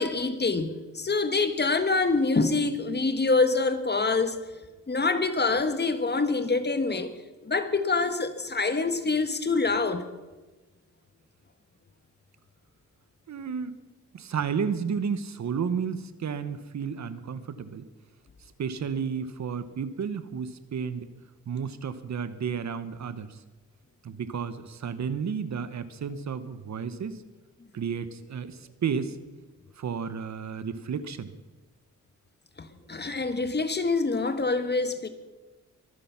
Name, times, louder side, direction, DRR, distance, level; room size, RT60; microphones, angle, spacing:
voice 1, 0.0-4.4 4.9-7.1 7.4-10.0 32.6-35.1, left 3 dB, 35° left, 1.6 m, -26 dB
voice 2, 13.3-13.8 14.1-17.9 18.6-21.1 21.5-23.4 24.0-27.2 27.7-29.2 29.8-31.3, right 6 dB, 60° right, 1.1 m, -32 dB
23.5 x 10.0 x 6.0 m
cardioid pair, 80°, 31 cm